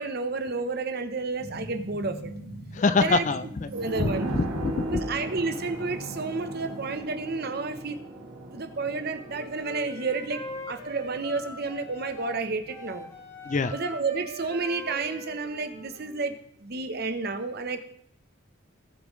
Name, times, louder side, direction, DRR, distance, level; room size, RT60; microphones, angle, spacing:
voice 1, 0.0-2.3 3.0-3.2 3.7-4.3 4.9-8.0 8.5-13.1 13.7-16.3 16.6-17.8, right 3 dB, 45° right, 8 dB, 0.9 m, -31 dB
sound 1, 1.4-7.0, right 1 dB, 75° left, 5.2 m, -42 dB
voice 2, 2.7-3.7 4.0-5.0 13.5-13.7, left 3 dB, 35° left, 13 dB, 0.4 m, -25 dB
sound 2, 3.7-13.0 13.3-13.4, right 1 dB, 85° right, 1.9 m, -38 dB
Wind instrument woodwind instrument, 8.9-12.4 12.7-16.2, equal, 15° left, 2.0 m, -42 dB
18.0 x 6.9 x 3.2 m, 0.70 s
head